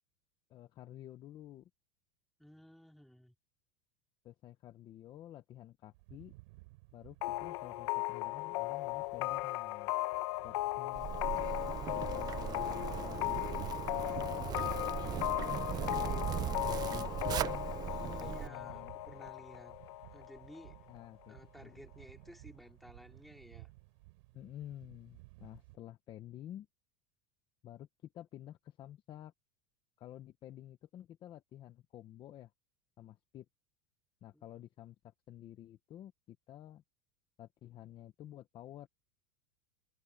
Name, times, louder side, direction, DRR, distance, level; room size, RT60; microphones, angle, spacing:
voice 1, 0.5-1.7 4.2-6.3 6.9-9.9 10.4-11.1 11.9-17.1 18.0-19.0 20.9-21.8 24.3-26.7 27.6-29.3 30.0-32.5 33.0-33.5 34.2-36.8 37.4-38.9, left 12 dB, 30° left, 1.0 m, -51 dB
voice 2, 2.4-3.3 17.9-19.8 20.1-20.9 21.3-23.7 34.3-34.5, equal, ahead, 4.2 m, -55 dB
sound 1, 5.9-25.8, right 25 dB, 65° right, 6.1 m, -57 dB
sound 2, 7.2-20.7, left 20 dB, 60° left, 1.0 m, -37 dB
Zipper (clothing), 10.9-18.5, right 11 dB, 25° right, 0.7 m, -38 dB
supercardioid pair, 165°, 16 cm